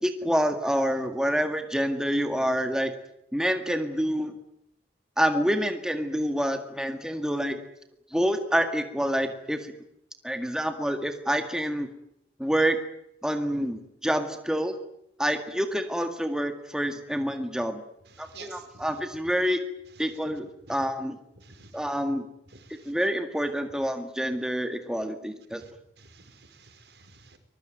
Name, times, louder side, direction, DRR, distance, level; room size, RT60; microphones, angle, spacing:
voice 1, 0.0-2.9 3.3-4.3 5.2-7.6 8.1-9.7 10.2-11.9 12.4-12.8 13.2-14.7 15.2-17.8 18.2-19.6 20.0-21.2 21.7-22.3 22.9-25.6, equal, 5° right, 6 dB, 1.9 m, -27 dB
voice 2, 18.1-18.8 20.7-20.8 21.4-21.8 22.5-22.9 25.6-25.7 26.0-27.4, right 4 dB, 80° right, 8 dB, 4.9 m, -50 dB
24.5 x 21.0 x 9.2 m, 0.81 s
head